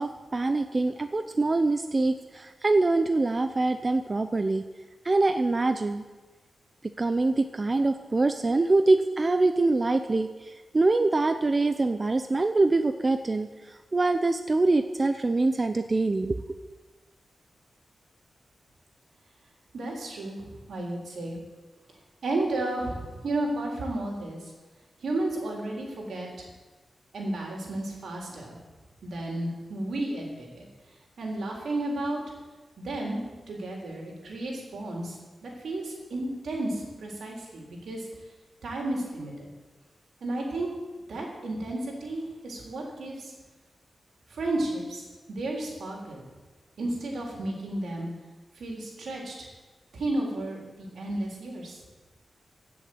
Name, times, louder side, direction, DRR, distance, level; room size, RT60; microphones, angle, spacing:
voice 1, 0.0-4.6 5.0-6.0 6.8-16.6, right 2 dB, 35° right, 8 dB, 0.7 m, -24 dB
voice 2, 19.7-21.4 22.2-24.4 25.0-26.5 27.1-28.6 29.0-30.7 31.2-32.2 32.8-33.2 33.5-38.0 38.6-39.5 40.2-40.7 41.1-43.3 44.3-45.0 45.3-46.3 46.8-48.1 48.6-49.5 49.9-51.8, right 2 dB, 80° right, -1 dB, 3.9 m, -32 dB
16.0 x 7.1 x 8.0 m, 1.3 s
cardioid pair, 75°, 0 cm